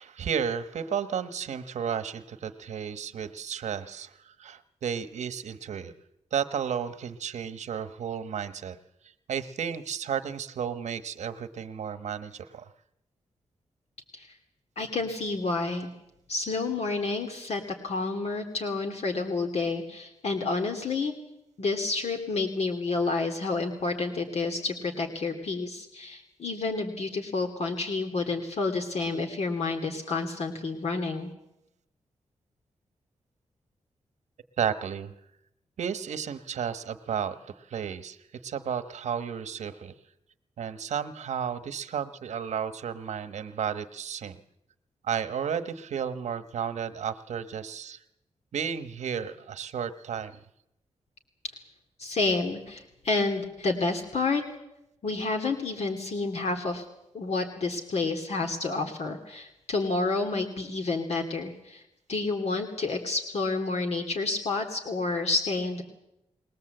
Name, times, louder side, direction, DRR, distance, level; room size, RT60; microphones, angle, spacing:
voice 1, 0.0-5.9 6.3-8.8 9.3-12.7 34.6-35.1 35.8-38.2 38.4-39.9 40.6-44.4 45.0-48.0 48.5-50.4, right 7 dB, 85° right, 11 dB, 1.2 m, -33 dB
voice 2, 14.8-15.9 16.3-21.1 21.6-31.3 52.0-54.4 55.0-56.8 57.1-61.8 62.1-65.8, left 3 dB, 65° left, 4 dB, 2.7 m, -29 dB
21.5 x 19.0 x 7.9 m, 0.85 s
cardioid pair, 70°, 12 cm